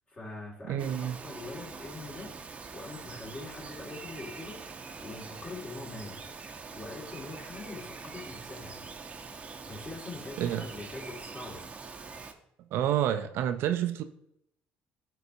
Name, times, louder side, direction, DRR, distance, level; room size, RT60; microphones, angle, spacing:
voice 1, 0.1-2.4 2.7-4.7 5.0-6.2 6.8-8.8 9.6-11.6, left 3 dB, 30° left, 2.2 m, -43 dB
voice 2, 0.7-1.2 10.4-10.7 12.7-14.0, right 10 dB, 70° right, 0.5 m, -28 dB
Bird vocalization bird call bird song, 0.8-12.3, right 4 dB, 30° right, 0.7 m, -44 dB
11.0 x 4.0 x 2.7 m
supercardioid pair, 85°, 4 cm